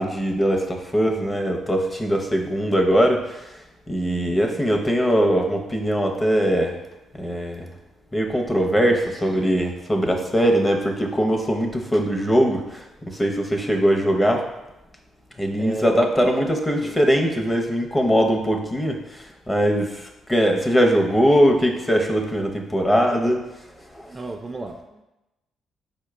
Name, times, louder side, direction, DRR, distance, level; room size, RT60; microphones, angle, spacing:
voice 1, 0.0-3.2 3.9-6.7 7.2-7.7 8.1-14.4 15.4-19.0 19.5-23.4, equal, 15° left, 2 dB, 0.6 m, -21 dB
voice 2, 15.6-16.1 16.8-17.0 23.1-23.4 24.1-25.0, right 2 dB, 25° right, 4 dB, 0.3 m, -33 dB
4.5 x 2.2 x 4.7 m, 0.97 s
cardioid pair, 90°, 0 cm